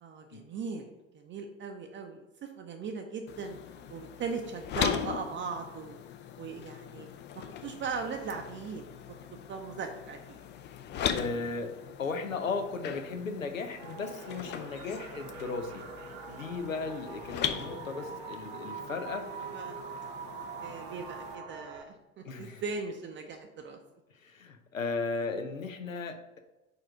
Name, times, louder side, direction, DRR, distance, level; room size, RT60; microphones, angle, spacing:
voice 1, 0.0-3.6 3.9-6.0 6.4-7.1 7.6-8.8 9.5-10.4 19.2-19.8 20.6-23.8, right 5 dB, 30° right, 4 dB, 0.6 m, -39 dB
sound 1, 3.3-21.4, left 9 dB, 30° left, 0.4 m, -39 dB
voice 2, 11.1-15.9 16.3-19.6 22.2-22.6 24.1-26.4, left 4 dB, 90° left, 6 dB, 0.6 m, -36 dB
sound 2, 13.8-21.8, right 6 dB, 60° right, 0.9 m, -44 dB
4.8 x 4.4 x 4.9 m, 1.0 s
figure-of-eight pair, 70°, 39 cm